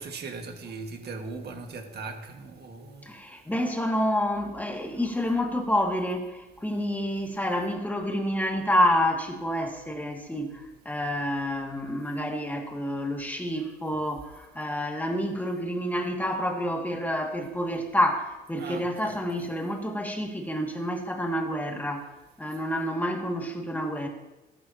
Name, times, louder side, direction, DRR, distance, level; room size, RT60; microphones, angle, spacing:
voice 1, 0.0-3.1 18.6-19.5, right 4 dB, 55° right, 4 dB, 1.7 m, -39 dB
voice 2, 3.0-22.1 22.4-24.1, equal, 10° left, 1 dB, 2.1 m, -28 dB
14.0 x 12.5 x 2.9 m, 1.1 s
cardioid pair, 90°, 20 cm